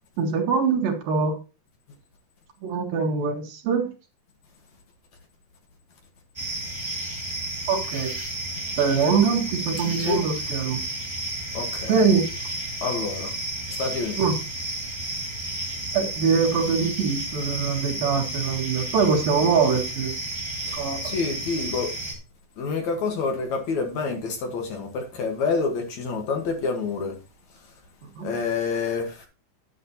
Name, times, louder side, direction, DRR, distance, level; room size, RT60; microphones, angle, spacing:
voice 1, 0.2-1.4 2.6-3.9 7.7-8.1 8.8-10.8 11.9-12.2 14.2-14.4 15.9-20.1 20.7-21.1 28.2-28.3, right 5 dB, 75° right, 3.5 m, -23 dB
sound 1, 6.3-22.1, right 1 dB, 15° right, 0.9 m, -32 dB
voice 2, 11.5-12.0 12.8-13.3 13.7-14.3 20.7-20.8 21.0-21.9 22.6-27.2 28.2-29.3, left 4 dB, 60° left, 2.4 m, -27 dB
9.9 x 9.6 x 2.8 m
omnidirectional pair, 4.2 m